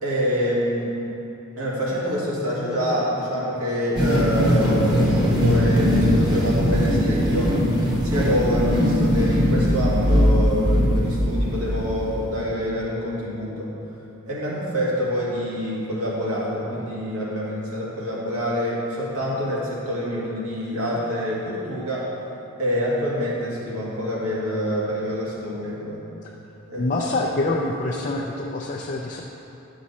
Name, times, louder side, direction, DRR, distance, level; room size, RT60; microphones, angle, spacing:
voice 1, 0.0-1.0 1.6-7.8 8.0-13.7 14.3-22.1 22.6-26.0 26.7-27.0, equal, 80° right, -6 dB, 2.0 m, -26 dB
sound 1, 3.9-12.4, equal, 20° right, 1.1 m, -20 dB
voice 2, 26.8-29.2, left 2 dB, 35° left, -2 dB, 0.4 m, -25 dB
11.0 x 6.2 x 4.2 m, 2.9 s
head